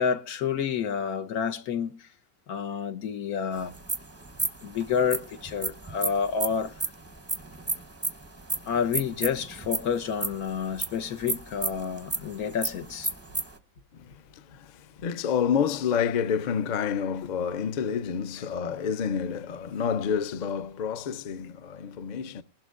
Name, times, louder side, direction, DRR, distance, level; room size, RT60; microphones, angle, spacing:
voice 1, 0.0-2.1 2.5-3.7 4.6-6.8 8.7-13.1 18.4-18.5, left 7 dB, 90° left, 1.4 m, -29 dB
sound 1, 3.6-13.6, right 2 dB, 15° right, 0.5 m, -33 dB
voice 2, 15.0-22.4, left 7 dB, 60° left, 0.4 m, -28 dB
20.0 x 11.5 x 2.4 m
omnidirectional pair, 1.5 m